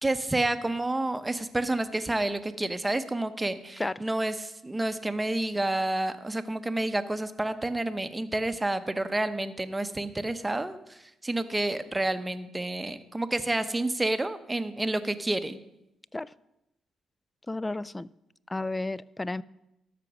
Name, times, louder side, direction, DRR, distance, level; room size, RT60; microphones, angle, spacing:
voice 1, 0.0-15.6, right 2 dB, 15° right, 10 dB, 0.7 m, -29 dB
voice 2, 17.5-18.1 18.5-19.4, left 2 dB, 15° left, 19 dB, 0.3 m, -32 dB
13.0 x 5.9 x 6.0 m, 0.87 s
cardioid pair, 90°, 0 cm